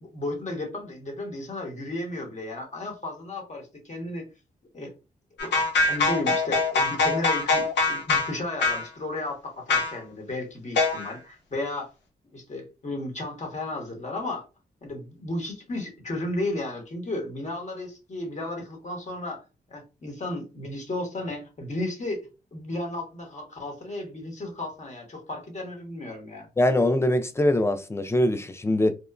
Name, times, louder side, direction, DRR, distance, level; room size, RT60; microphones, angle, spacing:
voice 1, 0.0-4.3 4.7-4.9 5.4-5.6 5.9-11.9 12.3-14.4 14.8-19.4 19.7-26.5, left 2 dB, 40° left, 1.2 m, -34 dB
sound 1, 5.4-8.3 8.6-8.9 9.7-10.0 10.8-11.1, left 3 dB, 75° left, 0.8 m, -23 dB
voice 2, 26.6-28.9, left 1 dB, 15° left, 0.4 m, -22 dB
2.9 x 2.1 x 2.4 m
supercardioid pair, 50°, 18 cm